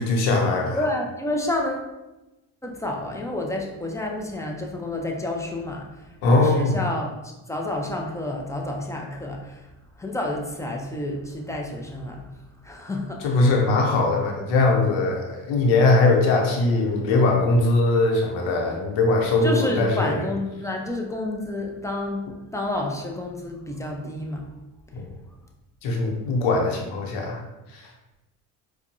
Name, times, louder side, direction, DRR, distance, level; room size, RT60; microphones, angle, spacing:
voice 1, 0.0-0.8 6.2-6.8 13.2-20.2 24.9-25.1 25.8-27.4 27.7-27.9, left 2 dB, 80° left, 0 dB, 0.9 m, -21 dB
voice 2, 0.7-1.9 2.6-12.3 12.6-13.4 19.4-24.5 24.9-25.0, left 1 dB, 5° left, 0 dB, 0.5 m, -30 dB
4.5 x 2.3 x 2.7 m, 1.0 s
supercardioid pair, 80°, 46 cm